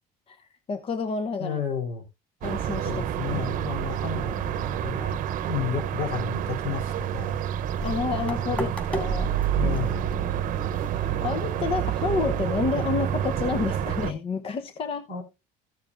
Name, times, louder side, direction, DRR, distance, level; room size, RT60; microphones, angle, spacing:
voice 1, 0.3-1.6 2.4-3.4 7.8-9.3 9.6-9.8 10.2-10.3 11.2-15.1, left 5 dB, 35° left, 0.8 m, -30 dB
voice 2, 1.4-2.0 2.8-7.4 8.2-8.7 9.5-10.0 15.1-15.2, left 7 dB, 60° left, 4.0 m, -33 dB
sound 1, 2.4-14.1, right 10 dB, 55° right, 0.8 m, -28 dB
sound 2, 7.6-12.6, equal, 5° left, 3.6 m, -37 dB
15.0 x 7.1 x 2.5 m
cardioid pair, 135°, 16 cm